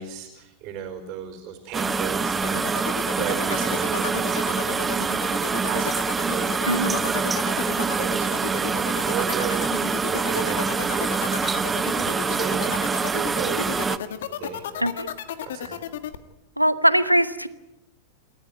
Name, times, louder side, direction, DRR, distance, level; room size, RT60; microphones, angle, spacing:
voice 1, 0.0-13.8 14.0-14.9 15.5-15.8, right 8 dB, 40° right, 4 dB, 4.3 m, -35 dB
sound 1, 1.7-14.0, right 5 dB, 15° right, 0.9 m, -25 dB
sound 2, 2.4-16.2, left 10 dB, 60° left, 1.6 m, -33 dB
voice 2, 6.7-7.0 14.8-15.1 16.6-17.5, equal, 90° right, 13 dB, 1.1 m, -21 dB
28.0 x 14.5 x 9.1 m, 0.93 s
figure-of-eight pair, 90°, 0 cm